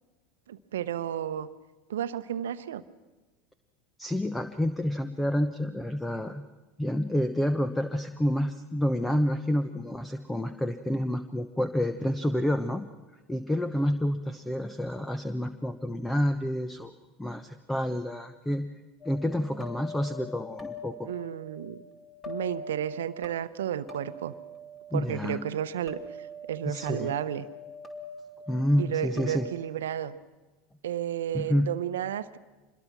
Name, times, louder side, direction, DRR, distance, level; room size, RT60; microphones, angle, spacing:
voice 1, 0.5-1.5 1.9-2.8 21.1-21.8 22.3-24.3 24.9-27.5 28.8-30.2 30.8-32.4, right 10 dB, 75° right, 13 dB, 0.9 m, -32 dB
voice 2, 4.0-6.4 6.8-12.8 13.3-16.9 17.2-18.7 19.0-21.1 24.9-25.4 26.6-27.1 28.5-29.5 31.3-31.7, equal, 10° left, 11 dB, 1.0 m, -29 dB
sound 1, 19.0-29.5, left 2 dB, 25° left, 3.4 m, -43 dB
26.0 x 21.5 x 6.1 m, 1.2 s
hypercardioid pair, 80°, 0 cm